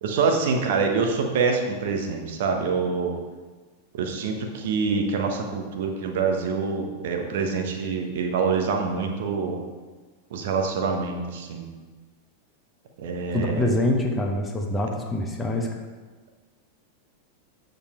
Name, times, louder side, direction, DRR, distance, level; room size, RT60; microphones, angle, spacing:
voice 1, 0.0-3.1 3.9-9.6 10.3-11.7 13.0-13.7, right 5 dB, 55° right, 3 dB, 1.2 m, -25 dB
voice 2, 13.3-15.7, left 1 dB, 10° left, 1 dB, 1.0 m, -25 dB
8.6 x 5.4 x 4.4 m, 1.3 s
figure-of-eight pair, 90°, 0 cm